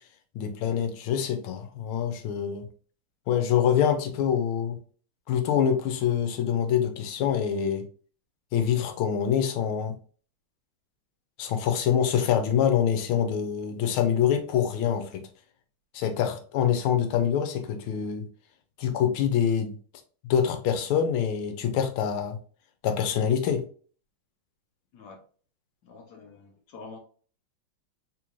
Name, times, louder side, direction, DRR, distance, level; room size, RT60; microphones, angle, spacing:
voice 1, 0.3-2.7 3.3-4.8 5.3-7.8 8.5-9.9 11.4-15.2 15.9-18.3 18.8-19.7 20.2-22.4 22.8-23.6, left 8 dB, 90° left, 1.5 m, -25 dB
voice 2, 25.8-27.0, left 4 dB, 65° left, 1.1 m, -46 dB
3.6 x 3.1 x 2.5 m
omnidirectional pair, 2.3 m